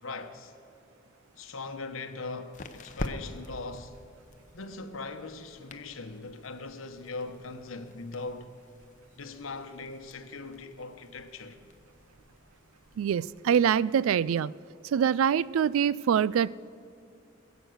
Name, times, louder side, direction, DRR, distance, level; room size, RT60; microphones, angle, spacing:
voice 1, 0.0-0.5 1.4-4.0 4.5-8.5 9.2-11.6, left 3 dB, 85° left, 1.0 m, -40 dB
sound 1, 1.2-13.6, left 2 dB, 40° left, 0.7 m, -46 dB
voice 2, 13.0-14.5 14.8-16.5, right 8 dB, 90° right, 0.3 m, -24 dB
21.0 x 8.1 x 6.4 m
head